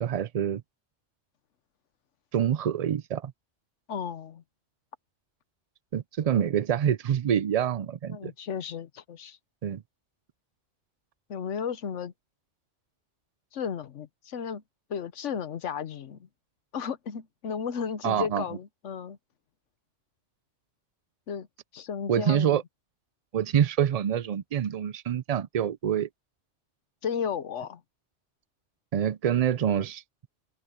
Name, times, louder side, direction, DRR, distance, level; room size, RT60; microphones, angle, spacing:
voice 1, 0.0-0.6 2.3-3.3 5.9-8.3 9.6-9.8 18.0-18.4 22.1-22.6 23.3-26.1 28.9-30.0, right 9 dB, 80° right, 0.3 m, -26 dB
voice 2, 3.9-4.4 8.1-9.4 11.3-12.1 13.5-14.6 14.9-16.3 16.7-19.2 21.3-21.5 21.7-22.6 27.0-27.8, left 7 dB, 80° left, 1.3 m, -34 dB
omnidirectional pair, 1.2 m